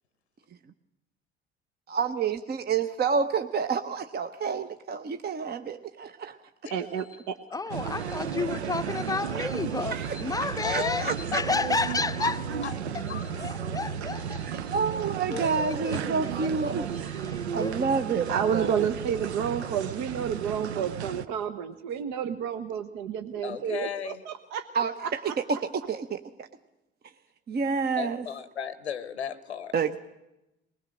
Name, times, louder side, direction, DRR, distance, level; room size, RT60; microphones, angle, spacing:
voice 1, 1.9-6.4 9.9-11.4 14.4-16.9 17.5-18.9 24.7-25.3 25.7-26.5 27.5-28.3 29.7-30.0, right 5 dB, 30° right, 0.8 m, -29 dB
voice 2, 6.7-7.4 9.3-9.5 16.9-17.4 18.3-24.7 25.0-25.6, right 8 dB, 60° right, 1.0 m, -31 dB
voice 3, 7.5-13.1 13.4-14.6 15.3-16.0 16.2-16.7 17.1-17.8, left 3 dB, 10° left, 0.6 m, -32 dB
sound 1, 7.7-21.3, right 7 dB, 85° right, 0.6 m, -34 dB
voice 4, 10.6-11.4 11.9-12.3 12.6-12.7 13.1-13.5 23.4-24.2 28.0-29.7, left 8 dB, 90° left, 0.7 m, -35 dB
21.0 x 20.0 x 6.3 m
figure-of-eight pair, 55°, 32 cm